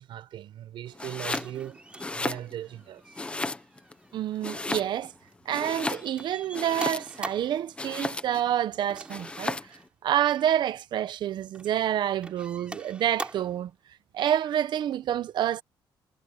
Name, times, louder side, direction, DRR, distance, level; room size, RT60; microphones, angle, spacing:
voice 1, 0.0-1.8 2.1-3.2, right 12 dB, 80° right, 7.2 m, -39 dB
Domestic sounds home sounds, 0.9-1.5 1.9-2.8 3.1-3.9 4.4-5.2 5.5-7.3 7.8-8.5 9.1-9.8, left 2 dB, 15° left, 0.9 m, -34 dB
sound 1, 1.2-5.3 5.6-7.6 8.9-9.9 10.3-10.6 11.2-11.8 12.2-13.6 14.8-14.9, right 2 dB, 15° right, 3.8 m, -43 dB
voice 2, 4.1-5.1 5.5-9.6 10.0-13.7 14.1-15.6, right 11 dB, 65° right, 1.0 m, -28 dB
cardioid pair, 155°, 8 cm